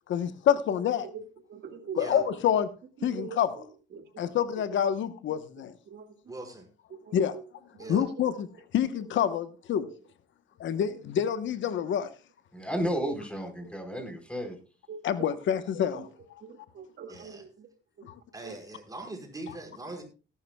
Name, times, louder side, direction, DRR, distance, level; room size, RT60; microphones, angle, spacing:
voice 1, 0.1-1.1 1.9-2.7 3.0-3.5 4.2-5.7 7.1-7.4 7.9-8.5 8.7-9.9 10.6-12.1 15.0-16.1 18.0-18.1, left 9 dB, 70° left, 12 dB, 1.0 m, -27 dB
voice 2, 1.5-2.1 3.0-3.4 3.9-4.3 5.9-6.0 7.1-7.2 7.8-8.0 10.7-10.8 14.9-15.3 15.8-16.0 16.5-17.7 18.4-18.5, right 6 dB, 60° right, 6 dB, 2.0 m, -42 dB
voice 3, 6.3-6.7 7.8-8.1 17.1-17.4 18.3-20.0, right 2 dB, 20° right, 3 dB, 4.8 m, -41 dB
voice 4, 12.5-14.6, equal, 5° left, 5 dB, 4.2 m, -32 dB
18.0 x 11.5 x 2.3 m, 0.33 s
cardioid pair, 90°, 20 cm